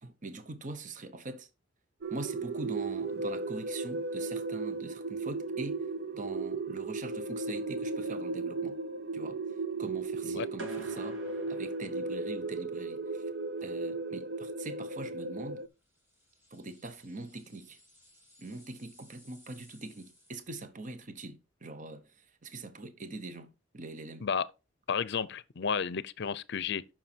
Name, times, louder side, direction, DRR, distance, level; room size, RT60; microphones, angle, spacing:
voice 1, 0.0-1.5 2.1-5.9 6.1-8.8 9.1-9.4 9.8-11.2 11.5-13.3 13.6-15.6 16.5-17.8 18.4-24.3, right 2 dB, 40° right, 0.9 m, -43 dB
sound 1, 2.0-15.7, right 3 dB, 55° right, 0.6 m, -36 dB
sound 2, 10.6-12.7, right 2 dB, 75° right, 2.5 m, -47 dB
sound 3, 15.8-20.6, left 1 dB, 15° right, 3.4 m, -61 dB
voice 2, 24.9-26.9, left 6 dB, 60° left, 0.6 m, -32 dB
9.3 x 6.2 x 4.4 m
head